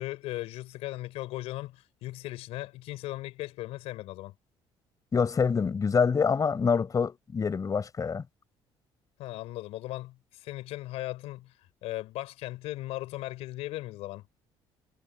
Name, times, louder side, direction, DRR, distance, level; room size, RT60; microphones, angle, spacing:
voice 1, 0.0-4.3 9.2-11.5 11.8-14.2, left 17 dB, 80° left, 5.8 m, -37 dB
voice 2, 5.1-8.2, left 5 dB, 35° left, 4.7 m, -26 dB
cardioid pair, 95°, 10 cm